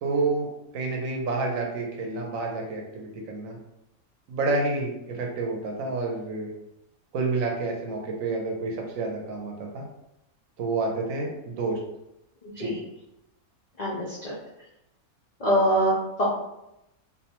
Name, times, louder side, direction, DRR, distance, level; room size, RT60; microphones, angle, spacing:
voice 1, 0.0-0.5 0.7-3.6 4.3-6.5 7.1-9.8 10.6-11.8 12.6-12.8, right 3 dB, 70° right, 0 dB, 0.9 m, -29 dB
voice 2, 12.4-12.8 13.8-14.3 15.4-16.3, equal, 85° left, -6 dB, 0.3 m, -24 dB
2.6 x 2.1 x 2.9 m, 0.87 s
omnidirectional pair, 1.5 m